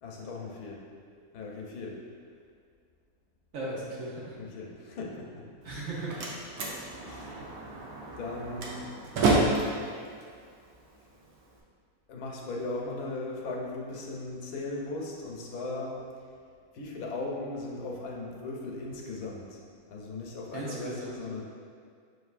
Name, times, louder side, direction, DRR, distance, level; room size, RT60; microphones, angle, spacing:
voice 1, 0.0-0.8 1.3-2.0 4.4-5.5 6.6-7.3 8.2-8.9 12.1-16.0 16.7-21.4, left 2 dB, 80° left, -2 dB, 1.1 m, -38 dB
voice 2, 3.5-4.4 5.6-6.2 7.2-7.4 20.5-21.1, right 2 dB, 60° right, -5 dB, 1.1 m, -37 dB
Slam, 5.6-11.6, right 2 dB, 80° right, 1.2 m, -31 dB
6.4 x 2.7 x 2.4 m, 2.1 s
omnidirectional pair, 1.6 m